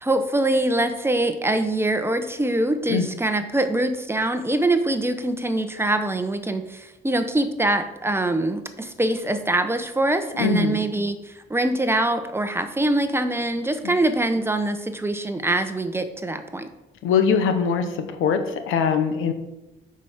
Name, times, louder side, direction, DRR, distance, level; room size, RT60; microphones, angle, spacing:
voice 1, 0.0-16.7, right 2 dB, 10° right, 8 dB, 0.9 m, -24 dB
voice 2, 10.4-10.8 17.0-17.9 18.2-18.4 18.7-19.3, left 6 dB, 85° left, 7 dB, 1.0 m, -21 dB
8.8 x 5.0 x 5.7 m, 1.0 s
cardioid pair, 90°, 20 cm